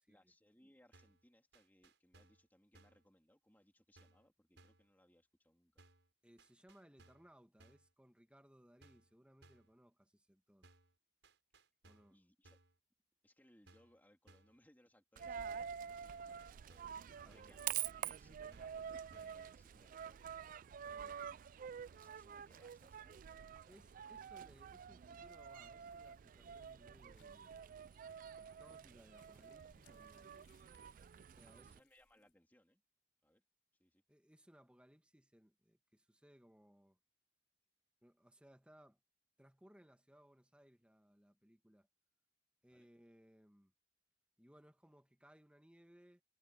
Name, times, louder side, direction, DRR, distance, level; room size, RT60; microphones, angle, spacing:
voice 1, 0.1-5.8 12.1-12.6 13.2-20.4 21.0-21.4 21.9-23.2 31.4-32.8 33.2-33.4 33.8-34.0 42.7-42.9, left 1 dB, 10° left, 3.1 m, -70 dB
sound 1, 0.9-1.2 1.5-2.5 2.7-3.1 4.0-4.3 4.6-4.9 5.8-6.1 6.4-7.3 7.6-7.9 8.8-9.1 9.4-9.7 10.6-10.9 11.2-12.2 12.4-12.8 13.7-14.0 14.3-14.6 15.5-15.8 16.1-17.0 17.3-17.6 18.5-18.8 19.1-19.4, right 2 dB, 70° right, 5.8 m, -66 dB
voice 2, 6.2-10.7 11.8-12.2 17.1-17.6 20.8-21.2 23.7-27.5 28.4-30.5 31.3-31.8 34.1-37.0 38.0-39.0 39.4-41.9 42.6-43.7 44.4-46.2, equal, 5° right, 1.7 m, -65 dB
Coin (dropping), 15.2-31.8, right 9 dB, 45° right, 0.3 m, -48 dB
sound 2, 27.0-32.3, left 6 dB, 70° left, 5.8 m, -76 dB
head